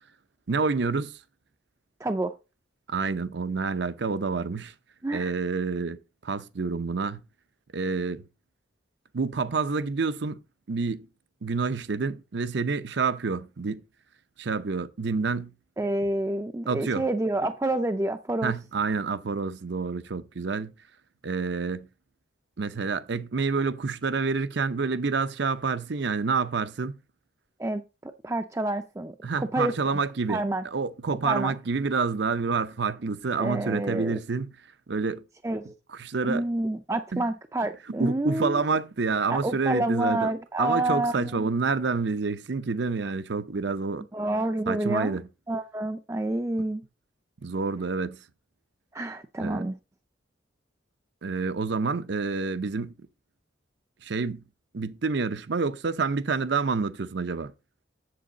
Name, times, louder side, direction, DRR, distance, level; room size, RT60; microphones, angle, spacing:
voice 1, 0.5-1.2 2.9-4.7 5.1-7.2 7.7-8.2 9.1-10.4 10.7-11.1 11.4-13.8 14.4-15.5 16.7-17.1 18.4-20.7 21.2-21.9 22.6-27.0 29.2-30.4 30.6-34.5 34.9-35.2 35.9-36.4 37.1-37.2 38.0-40.3 40.6-44.1 44.7-45.3 47.4-48.2 49.4-49.6 51.2-52.9 54.0-54.4 54.7-57.5, right 4 dB, 60° right, 0.6 m, -28 dB
voice 2, 2.0-2.3 5.0-5.3 15.8-18.5 27.6-29.7 30.3-30.6 31.1-31.5 33.4-34.2 35.4-35.7 36.2-38.5 39.3-41.5 44.1-45.2 45.5-46.8 48.9-49.8, right 1 dB, 15° right, 0.4 m, -28 dB
7.7 x 7.4 x 3.9 m
head